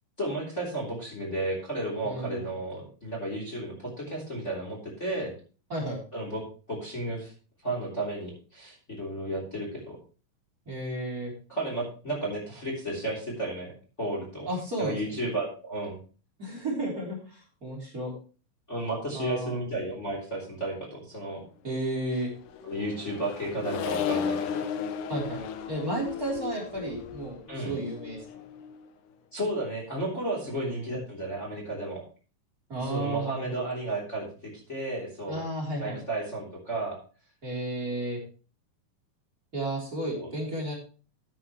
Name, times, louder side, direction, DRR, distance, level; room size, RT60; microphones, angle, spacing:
voice 1, 0.2-5.3 6.1-7.3 7.6-10.0 11.5-13.7 14.0-14.5 14.8-16.0 18.7-21.4 22.6-24.7 27.5-27.8 29.3-32.0 32.8-35.4 35.8-37.0 40.1-40.3, right 1 dB, 20° left, -2 dB, 3.6 m, -33 dB
voice 2, 2.0-2.5 5.7-6.0 10.7-11.3 14.5-15.1 16.4-18.1 19.1-19.6 21.6-22.3 25.1-25.4 25.7-28.2 30.5-30.9 32.7-33.7 35.3-36.0 37.4-38.2 39.5-40.8, right 1 dB, 25° right, -1 dB, 4.0 m, -33 dB
Accelerating revving vroom, 22.2-28.9, left 7 dB, 70° left, 2.4 m, -35 dB
14.0 x 8.7 x 3.2 m, 0.35 s
omnidirectional pair, 3.9 m